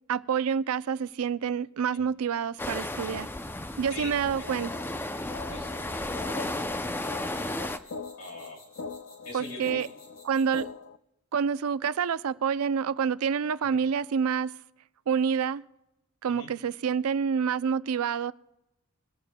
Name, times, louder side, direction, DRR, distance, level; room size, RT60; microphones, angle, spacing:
voice 1, 0.1-3.3 3.8-4.7 9.3-9.9 10.2-10.7 11.3-14.5 15.1-15.6 16.2-18.3, right 7 dB, 85° right, 0.4 m, -27 dB
sound 1, 2.6-7.8, left 1 dB, 10° left, 0.5 m, -34 dB
voice 2, 3.9-4.5 5.5-6.6 7.4-7.8 8.2-8.6 9.2-9.9 13.6-13.8 16.3-16.5, left 2 dB, 90° left, 2.9 m, -42 dB
sound 2, 4.0-11.0, left 5 dB, 65° left, 0.4 m, -43 dB
sound 3, 6.2-10.8, left 2 dB, 45° left, 5.1 m, -56 dB
22.0 x 17.5 x 2.2 m
head